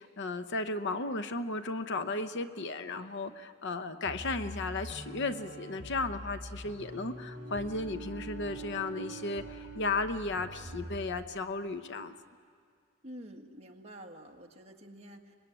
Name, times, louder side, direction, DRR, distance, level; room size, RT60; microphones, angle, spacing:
voice 1, 0.0-12.1, left 3 dB, 60° left, 10 dB, 0.9 m, -35 dB
sound 1, 4.0-11.2, equal, 10° right, 6.2 m, -45 dB
Bowed string instrument, 7.3-10.4, right 8 dB, 60° right, 6.3 m, -46 dB
voice 2, 13.0-15.3, equal, 30° right, 1 dB, 1.8 m, -48 dB
25.0 x 21.0 x 9.9 m, 2.1 s
head